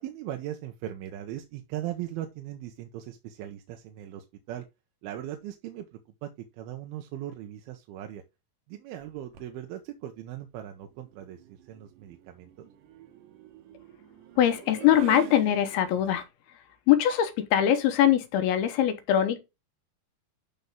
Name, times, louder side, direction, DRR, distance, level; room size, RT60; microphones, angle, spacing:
voice 1, 0.0-4.7 5.0-8.2 8.7-12.7, right 12 dB, 85° right, 2.6 m, -39 dB
sound 1, 9.1-9.6 10.9-16.2, right 11 dB, 70° right, 2.4 m, -46 dB
voice 2, 14.4-16.2 16.9-19.4, left 11 dB, 90° left, 2.9 m, -22 dB
12.0 x 4.1 x 3.6 m
omnidirectional pair, 4.4 m